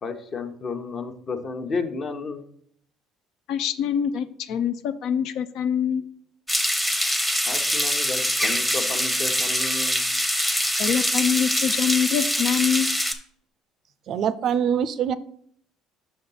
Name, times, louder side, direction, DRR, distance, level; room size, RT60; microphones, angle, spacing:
voice 1, 0.0-2.4 7.5-10.0, left 4 dB, 40° left, 0.9 m, -32 dB
voice 2, 3.5-6.0 10.8-12.9, left 8 dB, 70° left, 0.5 m, -24 dB
sound 1, 6.5-13.1, equal, 5° left, 0.8 m, -24 dB
voice 3, 14.1-15.1, right 8 dB, 55° right, 0.4 m, -24 dB
6.0 x 4.3 x 5.6 m
cardioid pair, 110°, 0 cm